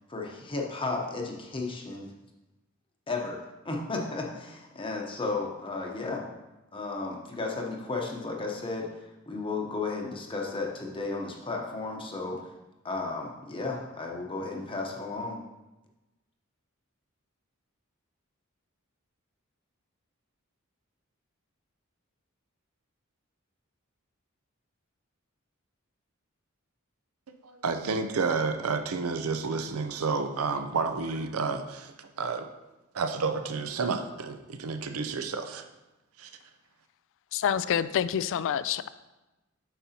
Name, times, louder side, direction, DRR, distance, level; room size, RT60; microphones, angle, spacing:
voice 1, 0.1-2.1 3.1-6.2 6.7-12.5 12.8-15.4, left 3 dB, 25° left, 0 dB, 0.8 m, -34 dB
voice 2, 27.3-32.5 32.9-35.7 36.2-36.3, right 4 dB, 90° right, 8 dB, 0.6 m, -30 dB
voice 3, 37.3-38.9, left 9 dB, 65° left, 15 dB, 0.3 m, -27 dB
8.9 x 6.0 x 2.8 m, 1.0 s
head